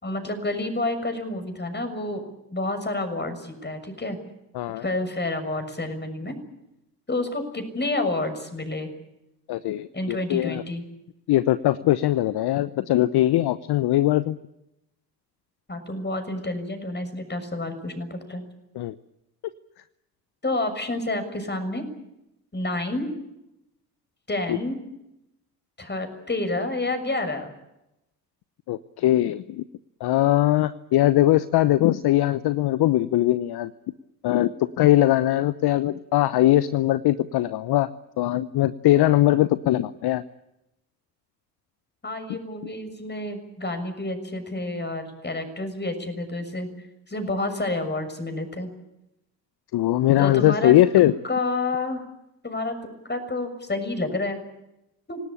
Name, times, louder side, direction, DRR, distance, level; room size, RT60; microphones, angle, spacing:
voice 1, 0.0-2.2 2.5-4.2 4.8-6.4 7.1-8.9 9.9-10.8 15.7-18.4 20.4-21.9 22.5-23.1 24.3-24.8 25.8-27.5 42.0-46.7 47.1-48.7 50.2-50.8 51.2-52.1 52.4-52.8 53.0-54.4 55.1-55.2, left 2 dB, 20° left, 8 dB, 6.7 m, -29 dB
voice 2, 9.5-10.6 11.3-14.4 18.8-18.9 24.5-24.6 28.7-29.6 30.0-33.7 34.2-37.9 38.2-40.2 49.7-51.1, left 14 dB, 50° left, 15 dB, 0.9 m, -21 dB
27.0 x 18.0 x 8.8 m, 0.88 s
hypercardioid pair, 50°, 49 cm